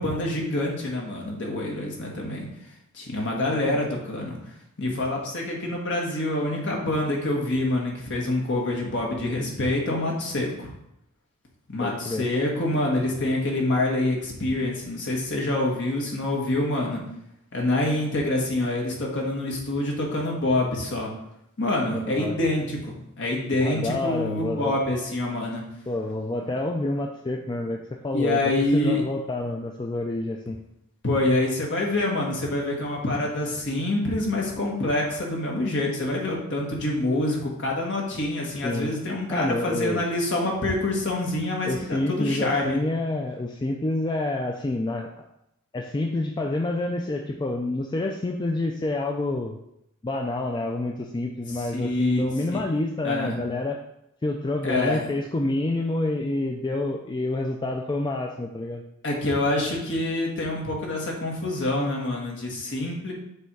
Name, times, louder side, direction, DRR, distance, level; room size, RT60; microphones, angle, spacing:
voice 1, 0.0-2.5 2.9-4.4 4.8-10.7 11.7-17.0 17.5-21.1 21.6-25.6 28.1-29.0 31.0-42.8 51.7-52.2 52.5-52.6 53.0-53.4 54.6-55.0 59.0-63.1, left 1 dB, 55° left, -1 dB, 1.5 m, -26 dB
voice 2, 11.8-12.3 22.0-22.4 23.6-24.7 25.9-28.4 28.7-30.6 38.6-38.9 39.3-40.1 41.6-45.3 45.7-49.6 50.0-53.8 54.2-58.8, left 2 dB, 20° left, 2 dB, 0.3 m, -28 dB
6.9 x 3.4 x 4.6 m, 0.81 s
head